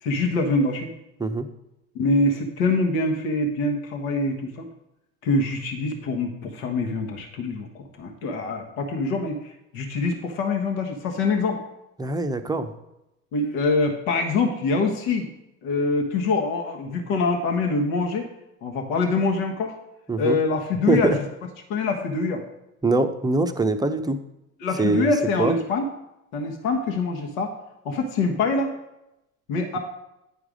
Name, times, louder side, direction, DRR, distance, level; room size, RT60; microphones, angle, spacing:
voice 1, 0.0-0.9 1.9-4.7 5.2-11.6 13.3-15.3 15.6-18.3 18.6-19.8 20.2-21.1 21.7-22.4 24.6-25.9 26.3-27.5 27.8-28.7 29.5-29.8, left 3 dB, 70° left, 3 dB, 1.4 m, -24 dB
voice 2, 12.0-12.7 20.1-20.4 20.9-21.2 22.8-24.2 24.8-25.1 25.4-25.6, right 3 dB, 10° right, 7 dB, 0.6 m, -23 dB
9.9 x 4.7 x 5.0 m, 0.89 s
hypercardioid pair, 75°, 43 cm